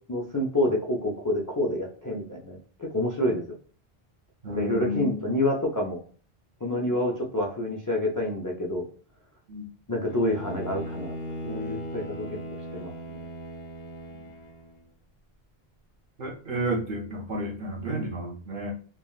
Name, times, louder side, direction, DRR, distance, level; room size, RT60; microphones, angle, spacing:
voice 1, 0.1-3.4 4.6-6.0 6.6-8.8 9.9-11.1 11.4-12.3 12.7-12.9, left 1 dB, 30° left, -2 dB, 0.3 m, -28 dB
voice 2, 4.4-5.2 9.5-9.7 14.2-14.3 16.2-18.7, equal, 55° right, 0 dB, 0.8 m, -31 dB
Bowed string instrument, 10.0-14.9, equal, 70° left, 0.8 m, -38 dB
3.3 x 2.3 x 2.3 m, 0.43 s
omnidirectional pair, 1.0 m